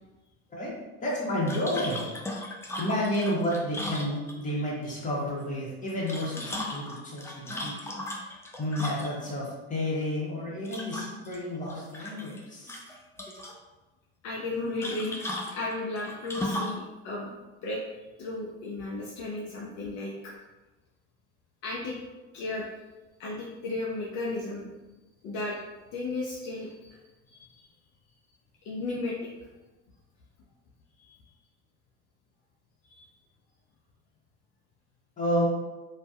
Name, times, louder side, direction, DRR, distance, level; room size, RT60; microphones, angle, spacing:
voice 1, 1.0-2.1 2.8-7.7 8.2-12.7 35.2-35.5, equal, 25° left, -5 dB, 1.0 m, -31 dB
sound 1, 1.5-4.6 5.9-9.3 10.6-11.4 11.7-12.4 12.7-13.5 14.8-16.8, left 1 dB, 10° left, 0.3 m, -36 dB
voice 2, 14.2-15.2 15.5-17.3 17.6-17.8 18.2-20.3 21.6-22.0 22.3-22.7 23.2-24.7 25.2-25.6 25.9-27.0 27.3-27.7 28.6-29.3 31.0-31.2 32.9-33.1, left 2 dB, 60° left, -3 dB, 0.5 m, -34 dB
2.5 x 2.2 x 2.3 m, 1.1 s
hypercardioid pair, 75°, 31 cm